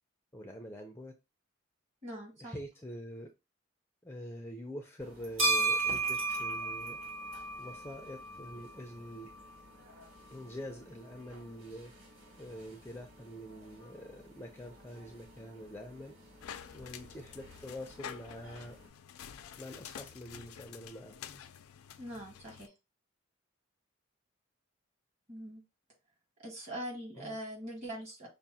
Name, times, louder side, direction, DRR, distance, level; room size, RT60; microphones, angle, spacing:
voice 1, 0.3-1.1 2.4-3.3 4.0-7.0 7.6-9.3 10.3-11.9 12.4-16.1 16.7-18.8 19.6-21.4 27.2-27.4, equal, 10° left, 0.4 m, -45 dB
voice 2, 2.0-2.5 22.0-22.7 25.3-25.6 26.4-28.3, equal, 35° right, 1.4 m, -42 dB
sound 1, 5.0-18.9, right 3 dB, 75° right, 2.1 m, -38 dB
sound 2, 16.4-22.7, left 8 dB, 80° left, 0.4 m, -49 dB
5.7 x 2.0 x 2.7 m
head